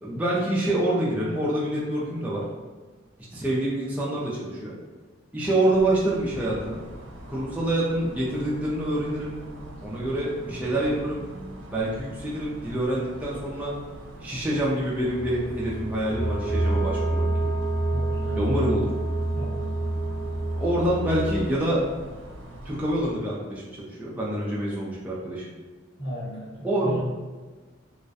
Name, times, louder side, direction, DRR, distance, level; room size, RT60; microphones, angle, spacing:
voice 1, 0.0-2.5 3.3-4.7 5.3-6.8 7.3-9.4 9.8-11.2 11.7-13.7 14.2-17.5 18.4-18.9 20.6-21.8 22.6-25.4 26.6-27.0, right 1 dB, 5° right, -7 dB, 0.3 m, -26 dB
sound 1, 5.7-23.1, right 1 dB, 80° right, 0.4 m, -43 dB
sound 2, 15.1-21.5, right 2 dB, 60° left, 0.6 m, -27 dB
voice 2, 17.9-18.5 19.3-19.7 26.0-27.0, equal, 80° left, -9 dB, 1.3 m, -34 dB
2.3 x 2.1 x 2.6 m, 1.3 s
head